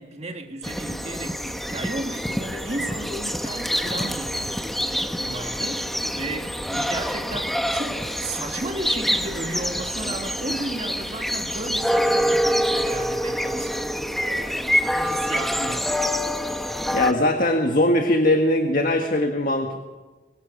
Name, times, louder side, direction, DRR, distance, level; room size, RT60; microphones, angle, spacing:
voice 1, 0.0-4.4 4.9-5.9 6.1-16.2, right 2 dB, 35° right, 2.1 m, -34 dB
sound 1, 0.6-17.1, equal, ahead, 1.0 m, -26 dB
voice 2, 16.9-19.8, left 1 dB, 50° left, 1.6 m, -20 dB
26.0 x 24.0 x 5.3 m
head